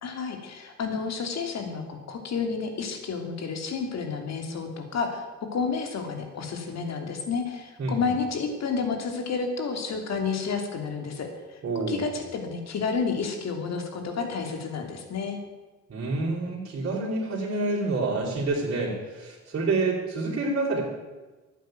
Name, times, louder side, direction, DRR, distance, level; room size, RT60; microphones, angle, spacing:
voice 1, 0.0-5.2 5.5-15.4, left 5 dB, 60° left, 5 dB, 2.9 m, -30 dB
voice 2, 11.6-12.1 15.9-20.8, right 3 dB, 45° right, -7 dB, 4.4 m, -28 dB
12.0 x 9.2 x 9.4 m, 1.2 s
cardioid pair, 90°, 30 cm